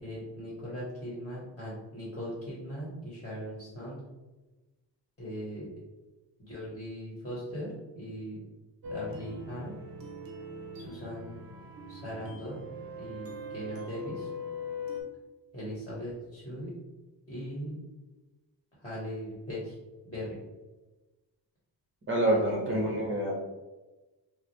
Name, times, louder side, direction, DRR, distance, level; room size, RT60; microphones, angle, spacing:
voice 1, 0.0-4.0 5.2-5.7 6.4-8.4 8.9-9.7 10.7-11.4 11.9-12.6 13.0-14.3 15.5-16.7 17.3-17.8 18.8-19.7 20.0-20.4 22.3-23.0, equal, 15° left, -7 dB, 1.3 m, -39 dB
sound 1, 8.8-15.0, left 2 dB, 55° right, 0.7 m, -41 dB
voice 2, 22.1-23.4, right 1 dB, 30° right, -3 dB, 0.9 m, -27 dB
4.8 x 2.1 x 3.1 m, 1.1 s
wide cardioid pair, 145°, 43 cm